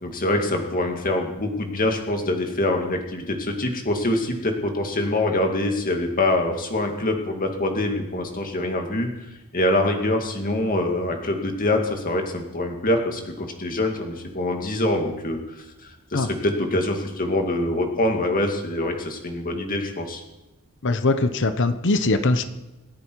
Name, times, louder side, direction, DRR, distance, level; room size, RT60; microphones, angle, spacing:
voice 1, 0.0-9.1 9.5-20.2, left 1 dB, 40° left, 3 dB, 2.2 m, -25 dB
voice 2, 20.8-22.4, left 2 dB, 55° left, 9 dB, 1.0 m, -21 dB
27.0 x 10.5 x 4.8 m, 1.0 s
head